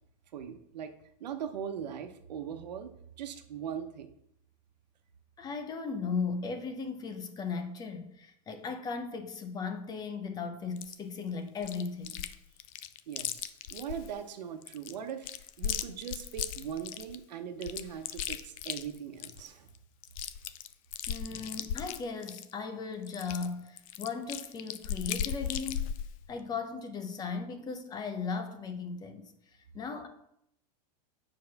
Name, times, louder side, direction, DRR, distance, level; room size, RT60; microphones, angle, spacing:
voice 1, 0.3-0.9 1.2-4.1 13.1-15.3 15.6-19.7, right 8 dB, 85° right, 1.1 m, -40 dB
voice 2, 5.4-12.2 21.1-25.9 26.3-29.3 29.7-30.1, left 5 dB, 20° left, 0.8 m, -37 dB
Chewing mastication, 10.8-10.9 11.6-12.3 12.6-14.1 14.6-17.2 17.6-19.5 19.7-19.8 20.0-22.5 23.1-26.1, left 10 dB, 55° left, 0.6 m, -36 dB
7.9 x 4.8 x 5.9 m
supercardioid pair, 150°, 21 cm